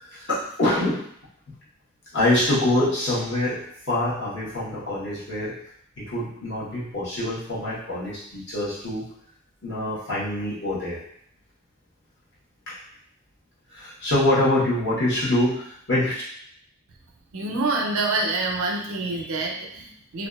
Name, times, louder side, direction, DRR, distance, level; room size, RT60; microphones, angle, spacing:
voice 1, 0.1-1.0 1.5-1.6 2.1-5.6 6.0-9.1 9.6-11.0 12.7-12.8 13.7-16.2, left 1 dB, 55° left, -8 dB, 1.0 m, -25 dB
voice 2, 17.3-20.3, right 3 dB, 70° right, 1 dB, 0.4 m, -26 dB
2.5 x 2.3 x 2.3 m, 0.67 s
head